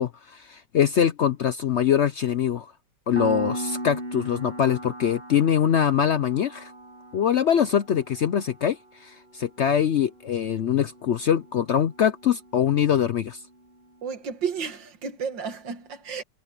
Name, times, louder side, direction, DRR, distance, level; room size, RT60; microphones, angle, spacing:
voice 1, 0.0-2.7 3.1-6.7 7.1-13.4, left 9 dB, 70° left, 0.6 m, -23 dB
Piano, 3.2-13.5, right 1 dB, 30° right, 6.4 m, -39 dB
voice 2, 14.0-16.2, right 6 dB, 85° right, 2.5 m, -32 dB
omnidirectional pair, 1.9 m